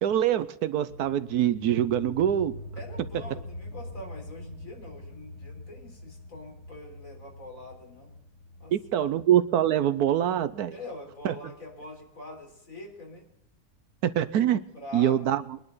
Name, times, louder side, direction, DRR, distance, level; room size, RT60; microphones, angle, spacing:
voice 1, 0.0-2.6 8.7-10.7 11.2-11.3 14.0-14.6 14.9-15.4, right 11 dB, 75° right, 13 dB, 1.2 m, -24 dB
sound 1, 0.9-12.0, left 1 dB, 85° left, 5.5 m, -44 dB
voice 2, 2.8-8.2 8.6-9.1 10.7-13.3 14.7-15.2, left 1 dB, 55° left, 1 dB, 4.3 m, -44 dB
23.0 x 11.0 x 4.0 m, 0.78 s
omnidirectional pair, 1.7 m